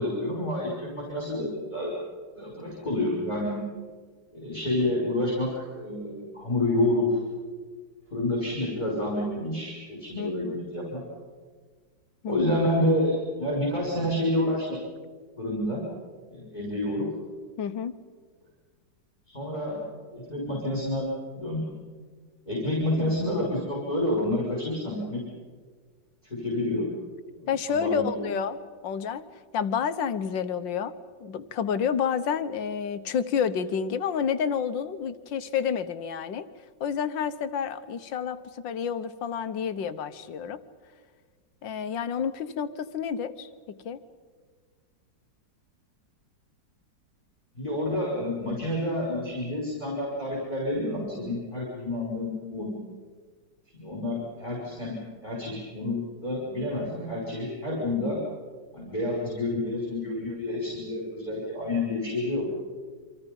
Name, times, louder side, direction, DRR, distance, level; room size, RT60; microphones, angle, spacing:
voice 1, 0.0-1.9 2.4-3.6 4.3-7.2 8.1-11.0 12.3-14.8 15.4-15.9 16.3-17.1 19.3-21.1 21.4-21.7 22.5-25.2 26.2-26.9 27.7-28.2 47.5-52.7 53.7-58.2 58.7-62.4, left 1 dB, 25° left, -3 dB, 6.0 m, -29 dB
voice 2, 10.2-10.6 12.2-12.6 17.6-18.0 27.5-29.2 29.5-30.9 31.2-36.5 36.8-40.6 41.6-43.5 43.9-44.0, left 7 dB, 80° left, 11 dB, 1.7 m, -29 dB
28.5 x 25.5 x 5.4 m, 1.5 s
omnidirectional pair, 2.0 m